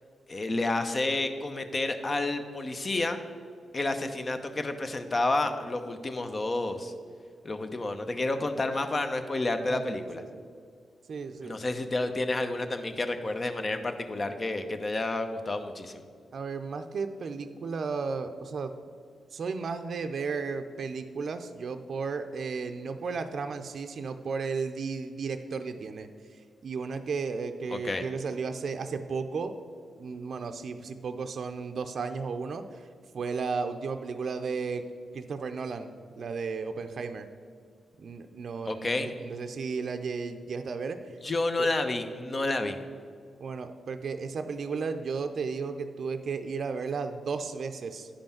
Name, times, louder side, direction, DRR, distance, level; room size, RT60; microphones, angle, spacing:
voice 1, 0.3-3.2 3.7-6.9 7.4-10.2 11.4-16.0 27.7-28.0 38.6-39.1 41.2-42.8, left 2 dB, 40° left, 7 dB, 0.9 m, -30 dB
voice 2, 9.7-10.4 11.1-11.6 16.3-18.7 19.3-26.1 26.6-29.6 30.0-32.9 33.1-34.9 35.1-37.3 38.0-41.2 41.6-41.7 43.4-48.1, right 5 dB, 65° right, 8 dB, 0.5 m, -34 dB
10.0 x 5.3 x 5.8 m, 2.1 s
hypercardioid pair, 40°, 0 cm